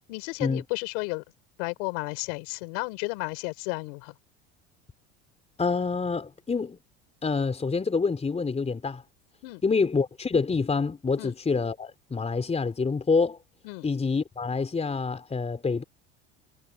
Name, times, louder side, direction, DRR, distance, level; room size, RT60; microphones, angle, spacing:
voice 1, 0.1-1.2 1.6-4.1 9.4-9.6 11.2-11.3 13.6-13.9, left 32 dB, 75° left, 5.6 m, -33 dB
voice 2, 5.6-6.8 7.2-9.0 9.6-13.4 13.8-15.8, left 4 dB, 20° left, 3.8 m, -27 dB
supercardioid pair, 95°, 31 cm